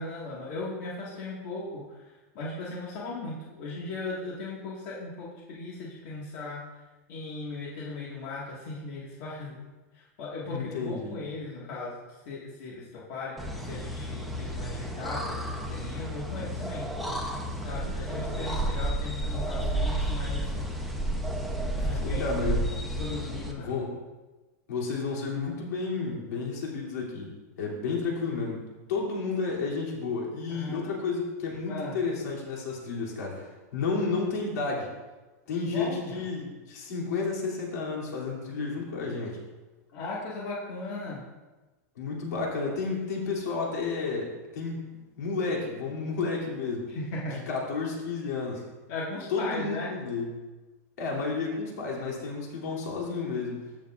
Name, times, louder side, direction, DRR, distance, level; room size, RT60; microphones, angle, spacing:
voice 1, 0.0-1.8 2.3-6.6 7.1-9.6 9.9-16.9 17.6-20.7 21.7-22.3 23.0-23.7 30.5-31.0 31.7-32.0 35.7-36.2 39.9-41.2 46.9-47.4 48.9-49.9, left 2 dB, 50° left, -5 dB, 1.9 m, -37 dB
voice 2, 10.5-11.2 22.0-22.6 23.6-23.9 24.7-27.3 27.6-28.6 28.9-34.9 35.5-39.4 42.0-44.8 45.2-46.9 47.3-48.7 49.3-50.3 51.0-53.6, left 4 dB, 80° left, -3 dB, 3.1 m, -31 dB
sound 1, 13.4-23.5, right 1 dB, ahead, 0.8 m, -31 dB
14.5 x 7.2 x 2.6 m, 1.2 s
supercardioid pair, 165°, 9 cm